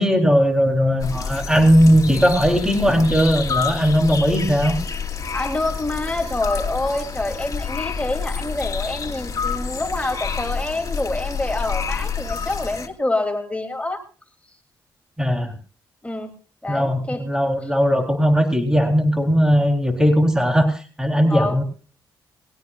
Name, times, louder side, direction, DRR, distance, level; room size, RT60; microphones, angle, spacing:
voice 1, 0.0-4.7 15.2-15.5 16.7-21.6, equal, 5° right, 5 dB, 3.8 m, -18 dB
sound 1, 1.0-12.9, left 5 dB, 40° left, 2.7 m, -28 dB
voice 2, 5.3-14.0 16.0-16.3 16.6-17.2 21.3-21.6, left 2 dB, 15° left, 4 dB, 3.2 m, -26 dB
21.0 x 17.5 x 2.5 m, 0.38 s
cardioid pair, 65°, 9 cm